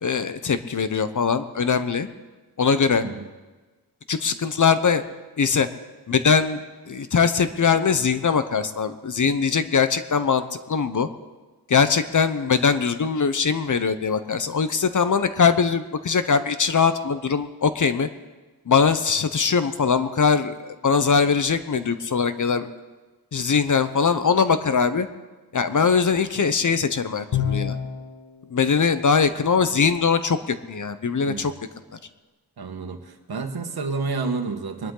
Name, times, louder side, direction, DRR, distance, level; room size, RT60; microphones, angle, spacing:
voice 1, 0.0-2.1 2.6-3.0 4.1-5.0 5.4-5.7 6.1-6.6 6.9-11.1 11.7-18.1 18.7-22.7 23.3-25.1 25.5-27.8 28.5-31.5, left 5 dB, 45° left, 11 dB, 0.9 m, -21 dB
Bowed string instrument, 27.3-28.2, left 8 dB, 65° left, 1.4 m, -26 dB
voice 2, 32.6-34.9, right 4 dB, 65° right, 6 dB, 1.5 m, -30 dB
22.5 x 11.0 x 3.9 m, 1.2 s
wide cardioid pair, 80°, 40 cm